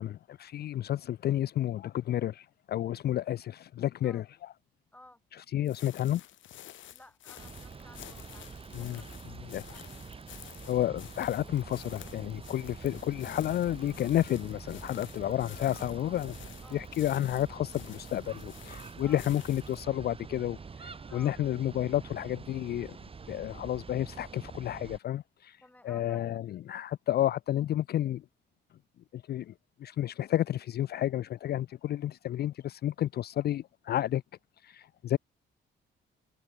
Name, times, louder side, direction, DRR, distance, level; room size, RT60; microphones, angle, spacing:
voice 1, 0.0-4.2 5.3-6.2 8.7-9.0 9.5-9.8 10.7-16.4 16.7-23.0 23.3-28.2 29.1-29.5 29.8-34.2 34.6-35.2, left 12 dB, 55° left, 0.4 m, -31 dB
voice 2, 4.9-5.2 6.9-10.2 16.6-16.9 19.0-19.2 21.1-21.3 25.6-26.2, left 1 dB, 10° left, 2.0 m, -56 dB
sound 1, 5.7-19.9, left 13 dB, 75° left, 1.5 m, -51 dB
sound 2, 7.4-25.0, right 5 dB, 30° right, 1.1 m, -46 dB
cardioid pair, 90°, 20 cm